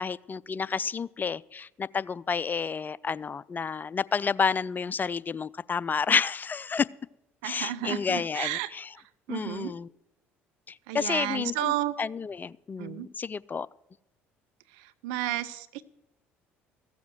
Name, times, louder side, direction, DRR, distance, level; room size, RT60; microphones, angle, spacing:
voice 1, 0.0-6.9 7.4-8.9 9.3-9.9 10.7-13.7, left 5 dB, 30° left, 20 dB, 0.4 m, -30 dB
voice 2, 7.4-8.7 9.3-9.7 10.9-11.9 12.8-13.1 15.0-15.8, right 14 dB, 70° right, 12 dB, 0.6 m, -32 dB
15.0 x 7.2 x 7.6 m, 0.89 s
hypercardioid pair, 55°, 6 cm